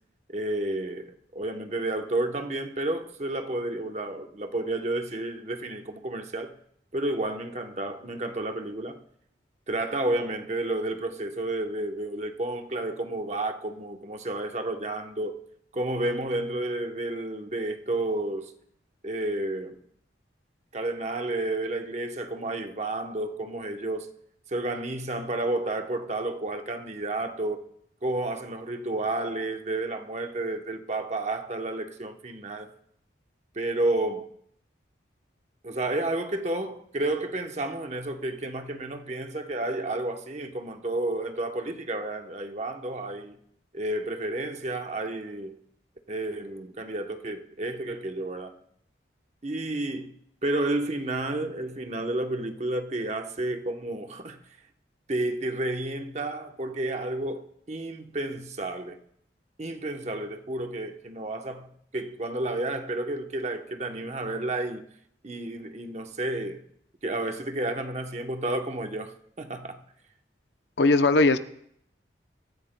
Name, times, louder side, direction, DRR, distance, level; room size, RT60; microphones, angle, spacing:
voice 1, 0.3-6.6 6.9-9.0 9.7-15.4 15.7-18.5 19.0-19.8 20.7-24.1 24.5-27.6 28.0-32.7 33.5-34.3 35.6-43.4 43.7-45.6 46.1-48.5 49.4-50.1 50.4-54.4 55.1-59.0 59.6-64.8 65.2-66.6 67.0-69.8, right 2 dB, 35° right, 0.9 m, -31 dB
voice 2, 70.8-71.4, left 3 dB, 70° left, 0.6 m, -19 dB
23.0 x 14.0 x 2.2 m
head